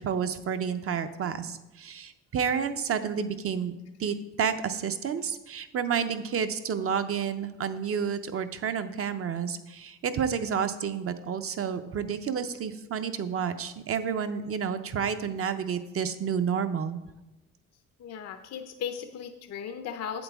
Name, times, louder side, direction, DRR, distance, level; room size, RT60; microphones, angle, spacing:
voice 1, 0.0-3.7 4.0-17.0, right 7 dB, 50° right, 9 dB, 0.7 m, -30 dB
voice 2, 18.0-20.2, left 7 dB, 60° left, 8 dB, 0.6 m, -37 dB
7.9 x 7.9 x 3.5 m, 1.0 s
cardioid pair, 90°, 30 cm